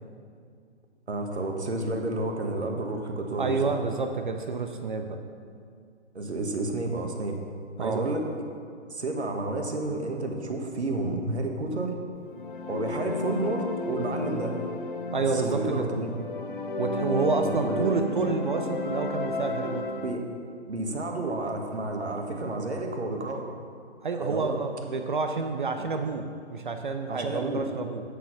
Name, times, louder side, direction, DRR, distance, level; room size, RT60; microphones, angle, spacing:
voice 1, 1.1-3.7 6.1-7.4 7.8-8.3 8.9-11.9 12.7-14.6 15.2-16.1 17.4-17.9 20.0-20.2 20.7-23.5 24.2-24.6 25.8-25.9 27.1-27.7, right 2 dB, 65° right, 3 dB, 1.5 m, -31 dB
voice 2, 3.4-5.2 7.8-8.1 15.1-15.9 16.8-19.9 24.0-28.0, right 4 dB, 45° right, 6 dB, 0.6 m, -29 dB
sound 1, 12.2-20.1, left 2 dB, 45° left, 0.8 m, -33 dB
9.0 x 6.7 x 5.8 m, 2.2 s
figure-of-eight pair, 140°, 35 cm